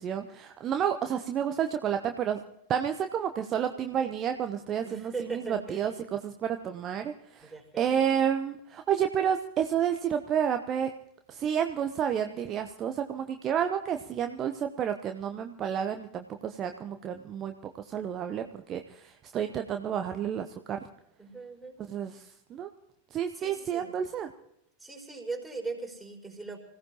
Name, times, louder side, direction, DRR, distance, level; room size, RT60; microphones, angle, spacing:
voice 1, 0.0-2.4 2.7-5.9 6.2-10.9 11.3-20.9 21.9-22.7 23.1-24.3, right 8 dB, 30° right, 6 dB, 0.9 m, -30 dB
voice 2, 4.8-5.9 7.4-8.1 21.2-21.8 23.3-24.0 24.8-26.6, right 3 dB, 5° right, 0 dB, 4.9 m, -39 dB
26.0 x 17.0 x 3.0 m, 0.79 s
figure-of-eight pair, 90°, 0 cm